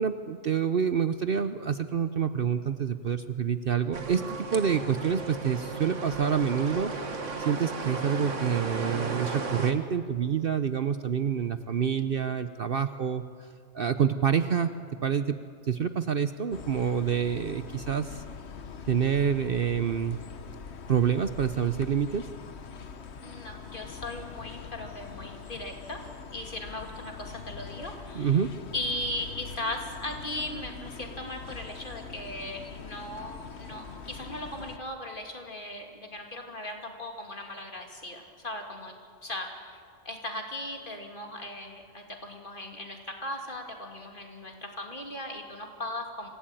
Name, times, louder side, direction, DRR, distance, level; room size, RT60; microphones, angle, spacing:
voice 1, 0.0-13.5 13.7-14.7 15.0-15.4 15.6-18.2 18.9-20.2 20.9-22.3 28.1-28.6, right 7 dB, 55° right, 11 dB, 0.8 m, -27 dB
sound 1, 3.9-9.7, right 4 dB, 70° right, 2.1 m, -35 dB
sound 2, 16.5-34.8, left 5 dB, 60° left, 1.3 m, -43 dB
voice 2, 23.2-26.0 26.3-28.4 28.7-39.0 39.2-46.3, left 1 dB, 40° left, 2 dB, 2.9 m, -38 dB
26.0 x 17.5 x 9.1 m, 2.2 s
omnidirectional pair, 1.3 m